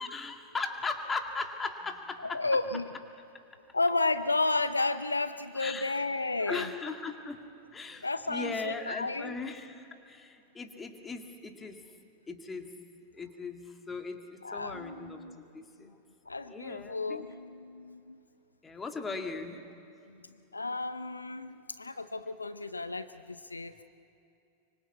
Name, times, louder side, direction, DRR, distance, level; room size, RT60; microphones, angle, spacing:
voice 1, 0.0-2.4 5.5-6.0 6.4-11.8 12.3-12.7 13.1-15.9 16.5-17.3 18.6-19.7, left 4 dB, 15° left, 5 dB, 2.1 m, -38 dB
voice 2, 2.2-2.9 3.7-6.7 8.0-9.4 14.4-15.4 16.3-18.2 20.5-23.7, left 3 dB, 80° left, 13 dB, 0.6 m, -32 dB
25.0 x 25.0 x 8.2 m, 2.7 s
figure-of-eight pair, 90°, 0 cm